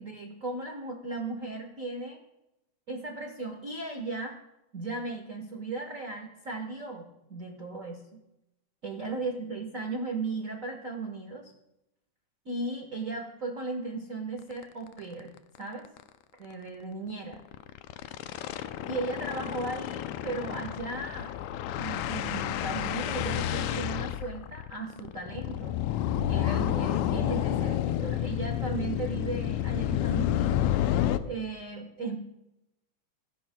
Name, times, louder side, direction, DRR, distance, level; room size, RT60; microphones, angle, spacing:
voice 1, 0.0-2.2 2.9-4.4 4.7-8.2 8.8-11.5 12.4-15.9 16.4-17.4 18.9-21.3 21.8-25.8 26.3-32.2, right 3 dB, 75° right, 2 dB, 0.7 m, -36 dB
sound 1, 14.5-14.6 15.0-15.1 15.4-15.6 15.9-16.0 17.3-31.2, left 12 dB, 80° left, 1.8 m, -30 dB
16.5 x 15.5 x 2.2 m, 0.92 s
omnidirectional pair, 3.4 m